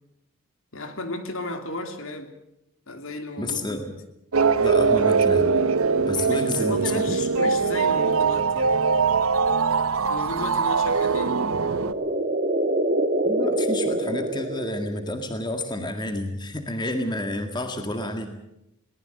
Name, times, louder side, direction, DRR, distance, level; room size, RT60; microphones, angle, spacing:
voice 1, 0.7-2.3 2.9-3.8 6.3-8.8 10.1-11.4, left 2 dB, 70° left, 7 dB, 3.1 m, -34 dB
voice 2, 3.4-3.9 4.6-5.5 6.0-6.8 13.2-18.4, left 1 dB, 20° left, 6 dB, 1.9 m, -30 dB
sound 1, 4.3-11.9, right 5 dB, 80° right, 1.0 m, -22 dB
sound 2, 11.3-15.2, right 1 dB, 35° right, 2.1 m, -26 dB
22.0 x 19.5 x 7.8 m, 0.83 s
head